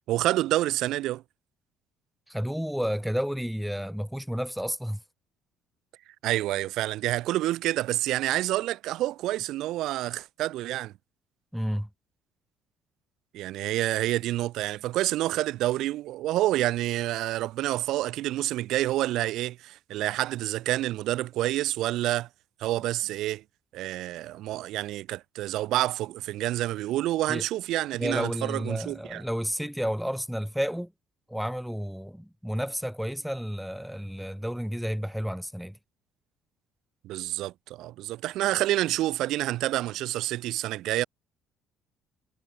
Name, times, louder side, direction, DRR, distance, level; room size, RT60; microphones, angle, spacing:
voice 1, 0.1-1.2 6.2-10.9 13.3-22.3 22.6-23.4 23.7-29.2 37.0-41.0, right 15 dB, 70° right, 0.4 m, -28 dB
voice 2, 2.3-5.0 11.5-11.9 27.3-27.4 28.0-30.9 31.3-35.8, equal, ahead, 0.8 m, -31 dB
cardioid pair, 145°, 0 cm